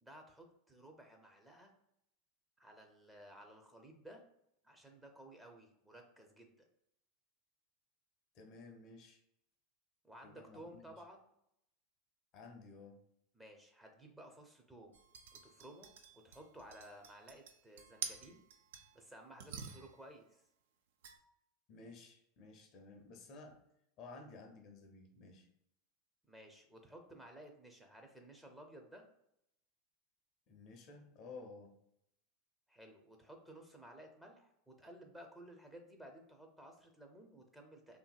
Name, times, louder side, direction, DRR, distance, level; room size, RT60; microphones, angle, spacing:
voice 1, 0.0-1.7 2.6-4.2 4.6-6.5 10.0-11.3 13.3-15.0 15.3-15.9 16.1-18.4 18.9-20.5 26.3-29.1 32.7-38.0, right 1 dB, 5° right, 3 dB, 0.5 m, -56 dB
voice 2, 8.3-9.2 10.2-10.9 12.3-13.0 21.7-23.6 24.0-25.5 30.5-31.7, left 3 dB, 50° left, 4 dB, 0.5 m, -54 dB
sound 1, 14.9-19.0 19.4-20.1 21.0-21.2, right 6 dB, 70° right, 0.3 m, -49 dB
2.7 x 2.6 x 2.3 m, 0.77 s
hypercardioid pair, 85°, 0 cm